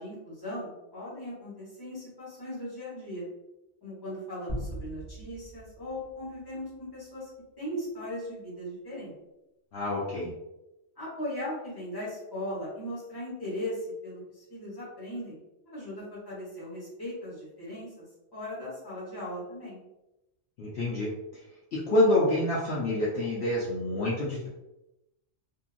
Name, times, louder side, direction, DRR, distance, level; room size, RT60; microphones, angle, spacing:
voice 1, 0.0-3.3 3.8-7.3 7.6-9.1 11.0-15.4 15.7-18.0 18.3-19.8, left 1 dB, 20° left, -8 dB, 1.2 m, -38 dB
sound 1, 4.5-7.0, right 1 dB, 10° right, 1.3 m, -40 dB
voice 2, 9.7-10.3 20.6-21.1 21.7-24.5, left 1 dB, 65° left, -6 dB, 0.8 m, -27 dB
2.8 x 2.6 x 2.4 m, 0.93 s
omnidirectional pair, 1.3 m